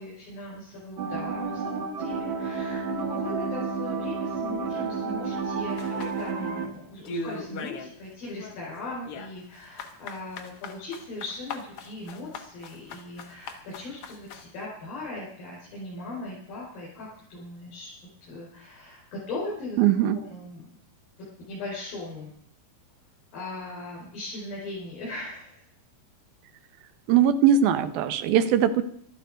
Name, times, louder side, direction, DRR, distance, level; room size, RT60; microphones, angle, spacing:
voice 1, 0.0-17.9 18.2-19.8 20.3-20.7 21.5-22.3 23.3-25.7, left 2 dB, 80° left, -6 dB, 7.0 m, -39 dB
sound 1, 1.0-6.7, right 5 dB, 55° right, 1.5 m, -31 dB
sound 2, 5.8-6.7 7.0-7.9 8.2-14.5, left 3 dB, 55° left, 1.7 m, -39 dB
voice 2, 19.8-20.2 27.1-28.8, right 9 dB, 85° right, 11 dB, 2.8 m, -20 dB
14.0 x 13.0 x 5.1 m, 0.64 s
omnidirectional pair, 4.1 m